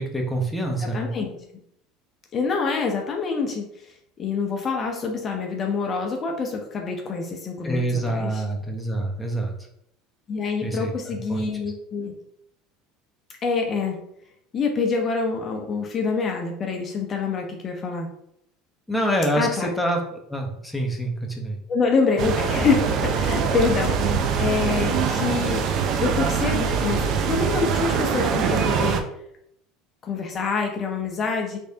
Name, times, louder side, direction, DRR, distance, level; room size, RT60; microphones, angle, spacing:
voice 1, 0.0-1.1 7.6-9.5 10.6-10.9 11.3-11.4 18.9-20.0 20.3-21.6, right 1 dB, 5° left, -1 dB, 0.8 m, -26 dB
voice 2, 0.8-1.3 2.3-8.4 10.3-12.1 13.4-14.0 14.5-18.1 19.4-19.7 21.7-25.7 26.0-29.0 30.0-31.6, left 4 dB, 35° left, 2 dB, 0.6 m, -26 dB
sound 1, 22.2-29.0, right 6 dB, 55° right, 0.5 m, -23 dB
3.4 x 3.2 x 2.7 m, 0.76 s
supercardioid pair, 90°, 0 cm